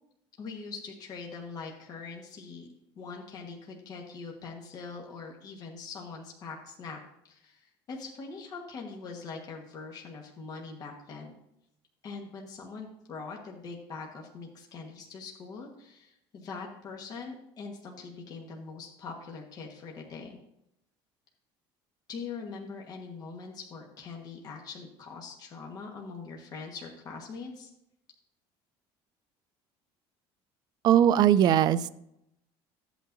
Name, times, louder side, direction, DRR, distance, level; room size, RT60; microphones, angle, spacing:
voice 1, 0.4-2.7 3.0-7.0 7.3-11.3 12.0-20.4 22.1-27.7, left 4 dB, 40° left, 0 dB, 1.4 m, -42 dB
voice 2, 30.8-31.9, right 10 dB, 40° right, 14 dB, 0.4 m, -20 dB
13.0 x 8.3 x 2.6 m, 0.80 s
cardioid pair, 155°, 10 cm